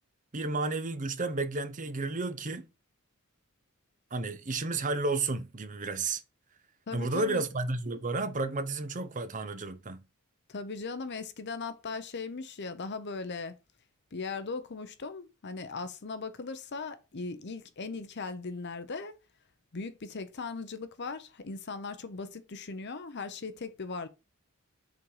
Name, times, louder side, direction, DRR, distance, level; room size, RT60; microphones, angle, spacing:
voice 1, 0.3-2.7 4.1-6.2 6.9-10.0, right 3 dB, 35° right, 0.8 m, -32 dB
voice 2, 6.9-7.4 10.5-13.5 14.1-19.1 19.7-24.1, left 4 dB, 55° left, 0.8 m, -38 dB
5.8 x 3.9 x 4.8 m
head